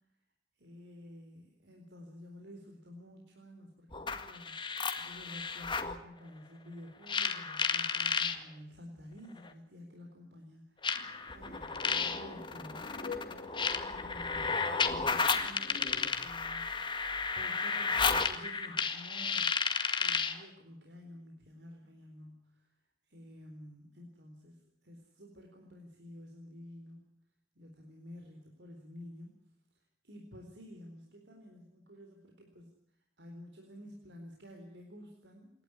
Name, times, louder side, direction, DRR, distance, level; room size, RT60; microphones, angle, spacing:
voice 1, 0.6-11.0 11.3-12.9 13.8-19.6 20.0-22.7 23.1-27.2 27.5-29.5 30.0-32.8 33.2-35.5, equal, 75° right, 2 dB, 4.1 m, -51 dB
sound 1, 3.9-6.0 7.1-8.4 9.4-9.5 10.8-20.4, left 5 dB, 25° left, 1.9 m, -32 dB
sound 2, 10.9-16.1, left 3 dB, 45° left, 2.8 m, -48 dB
28.0 x 12.5 x 9.8 m, 0.77 s
head